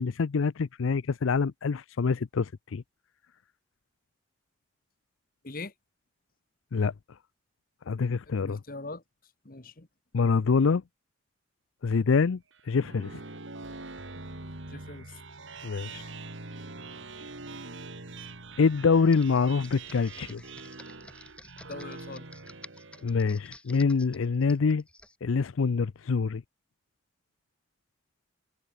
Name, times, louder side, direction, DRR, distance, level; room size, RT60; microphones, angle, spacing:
voice 1, 0.0-2.8 6.7-6.9 7.9-8.6 10.1-10.8 11.8-12.4 12.7-13.2 15.6-16.1 18.6-20.4 23.0-24.8 25.2-26.4, left 5 dB, 80° left, 0.5 m, -25 dB
voice 2, 8.4-9.0 9.4-9.9 14.7-15.2 21.7-22.2, left 2 dB, 45° left, 1.5 m, -41 dB
sound 1, 12.5-23.4, right 3 dB, 70° right, 2.5 m, -44 dB
Computer keyboard, 19.0-25.2, left 1 dB, 5° left, 3.9 m, -51 dB
head